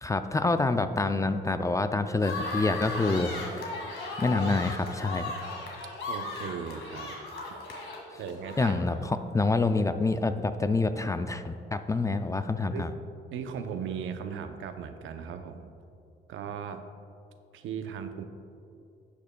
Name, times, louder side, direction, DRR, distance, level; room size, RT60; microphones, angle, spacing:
voice 1, 0.0-3.7 4.2-5.3 8.6-12.9, left 3 dB, 15° left, 10 dB, 0.3 m, -27 dB
sound 1, 2.2-9.1, left 2 dB, 80° left, 1.8 m, -36 dB
voice 2, 6.1-7.2 8.2-8.8 12.7-12.9 13.3-15.7 16.3-16.9 17.5-18.2, right 7 dB, 80° right, 8 dB, 0.6 m, -37 dB
11.5 x 8.5 x 2.2 m, 2.6 s
cardioid pair, 90°, 20 cm